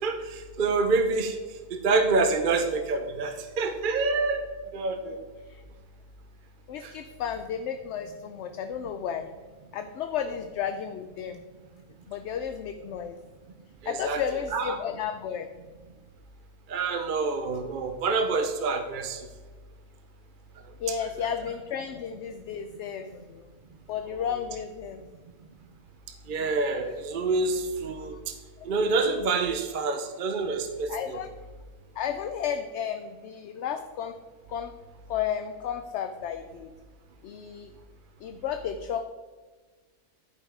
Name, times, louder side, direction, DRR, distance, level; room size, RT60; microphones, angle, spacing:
voice 1, 0.0-1.4 1.7-4.5 4.7-5.2 6.8-6.9 13.8-14.2 14.5-14.8 16.7-19.3 26.3-28.4 28.6-31.2, right 3 dB, 50° right, 7 dB, 0.6 m, -27 dB
voice 2, 6.7-9.3 9.7-11.4 12.0-13.2 13.9-15.5 20.8-23.5 23.9-25.0 28.6-28.7 30.9-31.3 32.0-34.1 34.5-34.7 35.1-36.7 37.2-37.7 38.2-39.0, left 8 dB, 65° left, 8 dB, 0.7 m, -33 dB
11.5 x 5.4 x 4.9 m, 1.4 s
omnidirectional pair, 1.5 m